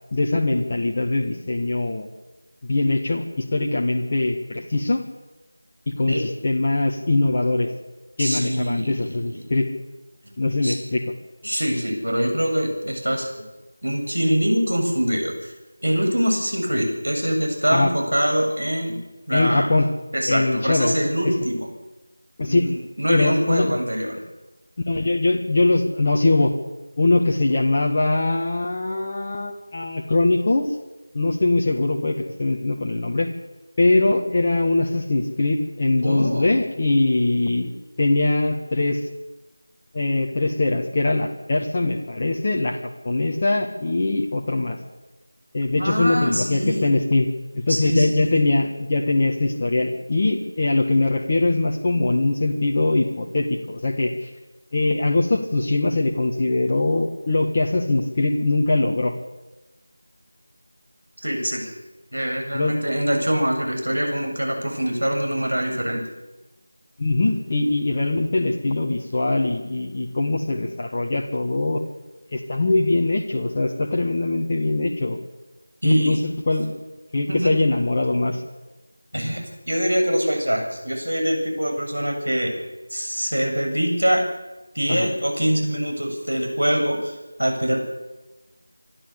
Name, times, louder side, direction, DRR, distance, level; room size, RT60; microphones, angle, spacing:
voice 1, 0.1-2.1 2.6-5.0 5.9-7.7 8.2-9.7 10.4-11.1 17.7-17.9 19.3-19.9 20.3-21.0 21.2-21.3 22.4-22.7 23.1-23.7 24.9-26.5 27.0-30.8 31.1-33.3 33.8-37.7 38.0-39.1 39.9-44.8 45.5-54.3 54.7-59.1 62.5-62.8 67.0-71.8 72.3-75.2 75.8-76.8 77.1-78.4 84.9-85.1, left 2 dB, 30° left, 0 dB, 1.6 m, -22 dB
voice 2, 8.2-9.4 10.6-10.8 11.4-13.5 13.8-15.5 15.8-19.0 19.3-19.7 20.1-21.7 22.5-24.2 36.0-36.5 45.8-46.9 47.7-48.4 61.2-61.7 62.1-66.0 75.8-76.2 77.1-77.5 79.1-82.6 82.9-84.3 84.7-87.8, equal, 85° right, 3 dB, 7.8 m, -24 dB
26.0 x 12.0 x 8.3 m, 1.1 s
figure-of-eight pair, 170°, 0 cm